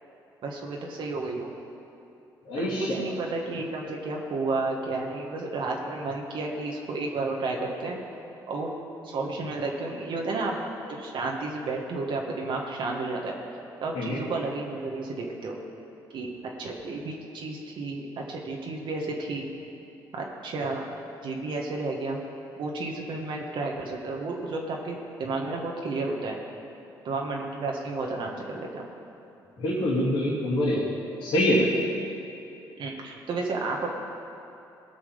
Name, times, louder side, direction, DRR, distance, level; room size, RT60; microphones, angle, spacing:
voice 1, 0.4-1.5 2.5-8.0 8.5-8.7 9.0-10.5 10.9-13.4 13.8-15.6 16.1-16.3 16.6-19.5 20.1-20.9 21.2-22.2 22.6-26.4 27.0-28.9 32.8-33.9, right 3 dB, 65° right, -1 dB, 1.5 m, -32 dB
voice 2, 2.5-3.0 13.9-14.2 29.6-30.8 31.2-31.7, equal, 75° left, -10 dB, 2.9 m, -25 dB
17.5 x 5.9 x 5.1 m, 2.8 s
supercardioid pair, 70°, 9 cm